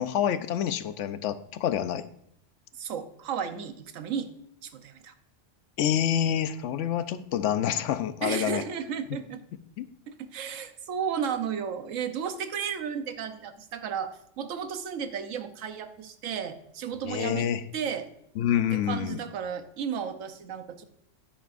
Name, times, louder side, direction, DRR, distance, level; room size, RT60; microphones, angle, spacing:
voice 1, 0.0-2.0 5.8-8.6 9.8-9.9 17.0-17.6 18.4-19.2, left 9 dB, 75° left, 12 dB, 0.9 m, -27 dB
voice 2, 2.7-4.3 4.6-5.1 8.2-9.4 10.1-18.1 18.7-20.8, right 7 dB, 90° right, 9 dB, 1.2 m, -33 dB
10.0 x 8.7 x 2.5 m, 0.74 s
omnidirectional pair, 1.3 m